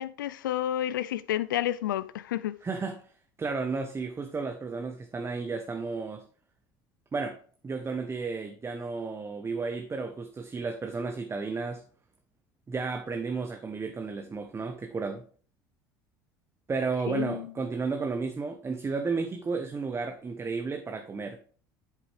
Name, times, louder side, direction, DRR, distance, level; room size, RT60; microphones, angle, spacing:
voice 1, 0.0-2.5 17.1-17.5, left 12 dB, 85° left, 0.5 m, -30 dB
voice 2, 2.6-3.0 3.4-6.2 7.1-7.4 7.6-11.8 12.7-15.2 16.7-21.4, right 4 dB, 25° right, 1.0 m, -33 dB
8.3 x 7.3 x 3.4 m
hypercardioid pair, 70°, 10 cm